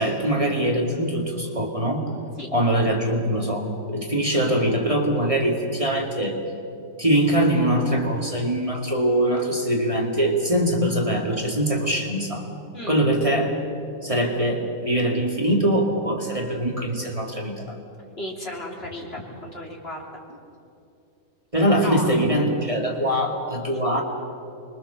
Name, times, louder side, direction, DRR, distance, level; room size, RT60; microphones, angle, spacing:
voice 1, 0.0-2.1 2.5-6.4 7.0-12.4 12.9-13.5 14.0-17.8 21.5-24.0, right 1 dB, 20° right, 0 dB, 2.3 m, -22 dB
voice 2, 18.2-20.2 21.8-22.2 23.1-23.2, left 1 dB, 35° left, -1 dB, 3.5 m, -34 dB
25.5 x 22.5 x 7.0 m, 2.6 s
omnidirectional pair, 1.7 m